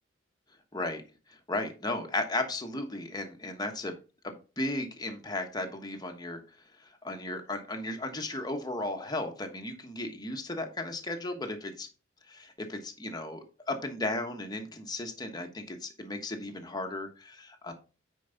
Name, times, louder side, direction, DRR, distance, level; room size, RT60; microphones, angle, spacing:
voice 1, 1.3-4.0 4.2-6.4 6.8-11.9 12.3-17.7, left 2 dB, 20° left, 4 dB, 1.2 m, -35 dB
9.3 x 4.7 x 3.9 m, 0.34 s
head